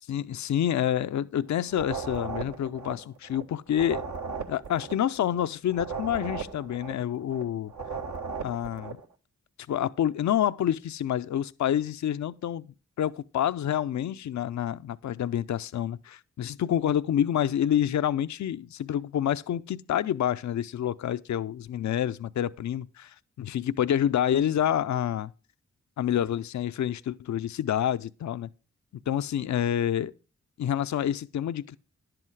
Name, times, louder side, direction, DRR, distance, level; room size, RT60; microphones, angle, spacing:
voice 1, 0.1-4.0 4.5-7.7 8.4-9.0 9.7-12.7 13.0-25.3 26.0-28.5 29.1-30.1 30.6-31.8, left 10 dB, 65° left, 0.5 m, -28 dB
sound 1, 1.7-3.4 3.7-7.4 7.7-9.1, right 5 dB, 70° right, 1.4 m, -37 dB
10.5 x 7.8 x 4.7 m
cardioid pair, 40°, 30 cm